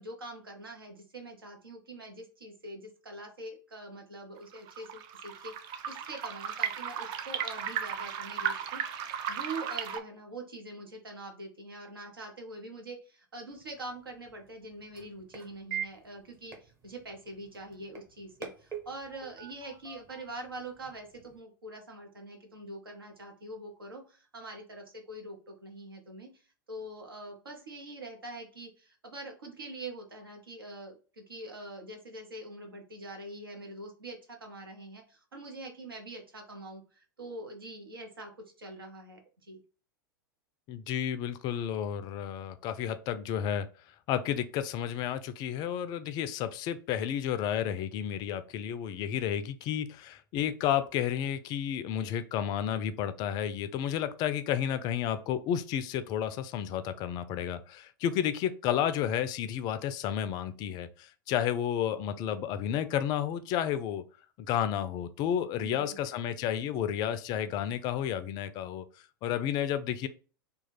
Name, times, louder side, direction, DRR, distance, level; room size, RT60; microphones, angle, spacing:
voice 1, 0.0-26.4 26.7-38.3 38.6-39.6 65.5-66.1, right 2 dB, 80° right, 2 dB, 0.9 m, -44 dB
sound 1, 4.4-10.0, right 9 dB, 40° right, 0.4 m, -35 dB
sound 2, 13.5-21.4, right 7 dB, 25° right, 0.9 m, -45 dB
voice 2, 40.7-43.7 44.1-64.0 64.4-68.8 69.2-70.1, left 9 dB, 35° left, 11 dB, 0.4 m, -31 dB
3.0 x 2.3 x 4.1 m, 0.37 s
figure-of-eight pair, 90°, 12 cm